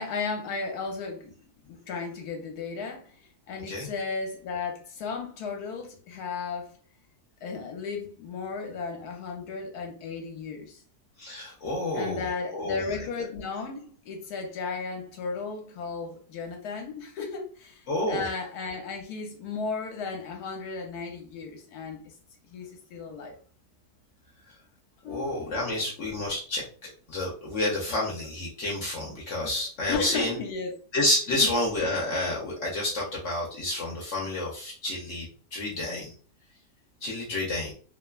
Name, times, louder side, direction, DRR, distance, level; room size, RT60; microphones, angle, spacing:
voice 1, 0.0-1.4 1.7-6.8 7.4-10.8 11.9-22.1 22.5-23.3 25.0-25.6 29.9-30.7 31.4-31.5, left 4 dB, 75° left, 1.1 m, -35 dB
voice 2, 11.2-12.8 17.9-18.2 25.1-30.3 30.9-35.3 35.5-36.1 37.0-37.7, left 1 dB, 55° left, 0.9 m, -29 dB
3.1 x 2.1 x 2.2 m
omnidirectional pair, 1.8 m